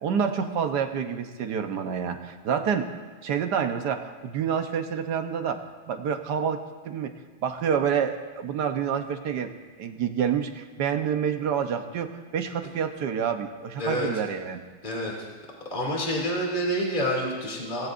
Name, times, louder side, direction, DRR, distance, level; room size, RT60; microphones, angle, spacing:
voice 1, 0.0-2.9 3.2-7.1 7.4-9.5 9.8-14.6, right 7 dB, 60° right, 6 dB, 1.5 m, -28 dB
voice 2, 13.8-14.1 14.8-15.3 15.7-17.9, equal, 25° left, -3 dB, 2.8 m, -28 dB
25.5 x 19.0 x 2.6 m, 1.4 s
omnidirectional pair, 2.1 m